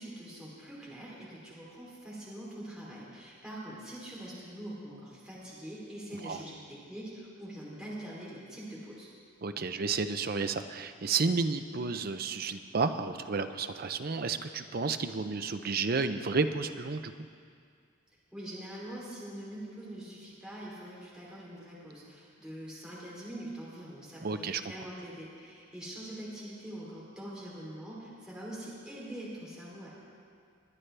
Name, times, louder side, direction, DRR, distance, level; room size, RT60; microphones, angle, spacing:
voice 1, 0.0-9.1 18.3-29.9, right 1 dB, 5° right, -8 dB, 3.0 m, -44 dB
voice 2, 9.4-17.1 24.2-24.6, right 4 dB, 50° right, 9 dB, 0.5 m, -31 dB
21.0 x 10.5 x 3.4 m, 2.2 s
head